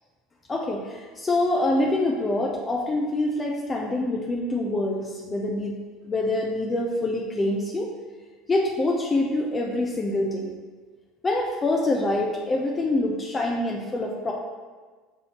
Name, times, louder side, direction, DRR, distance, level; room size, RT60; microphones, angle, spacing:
voice 1, 0.5-5.8 6.1-7.9 8.5-10.5 11.2-14.3, left 2 dB, 25° left, -1 dB, 0.5 m, -25 dB
6.3 x 2.7 x 2.9 m, 1.4 s
hypercardioid pair, 70°, 0 cm